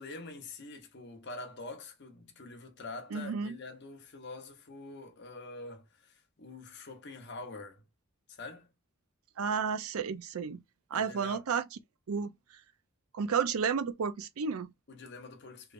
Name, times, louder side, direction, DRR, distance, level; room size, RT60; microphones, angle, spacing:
voice 1, 0.0-7.9 8.3-8.7 10.9-11.4 14.9-15.7, left 2 dB, 50° left, 0.9 m, -45 dB
voice 2, 3.1-3.5 9.4-10.6 10.9-11.6 12.1-12.3 13.1-14.7, right 6 dB, 80° right, 0.5 m, -31 dB
3.1 x 3.1 x 2.5 m
head